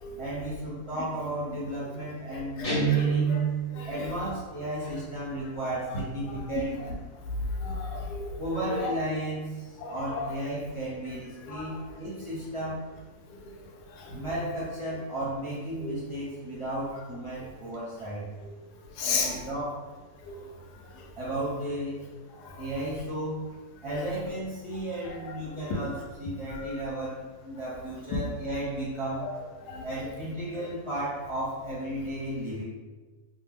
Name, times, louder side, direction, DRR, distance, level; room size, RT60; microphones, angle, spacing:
voice 1, 0.2-3.3 3.9-6.8 8.4-12.8 14.1-18.3 19.0-19.8 21.2-22.0 22.6-23.4 23.8-29.3 29.8-32.6, right 1 dB, 40° right, -9 dB, 0.4 m, -34 dB
voice 2, 2.6-3.4 3.7-3.9 5.9-6.6 7.4-8.4 8.7-9.0 9.8-10.3 11.5-11.8 13.3-13.5 13.9-14.2 15.8-15.9 19.0-19.4 20.2-20.5 20.9-21.1 22.4-22.6 25.2-25.3 29.2-29.3 29.7-29.9, left 3 dB, 90° left, 1 dB, 1.2 m, -34 dB
Guitar, 2.6-3.8, right 7 dB, 55° left, 0.4 m, -25 dB
2.8 x 2.1 x 3.4 m, 1.3 s
omnidirectional pair, 1.7 m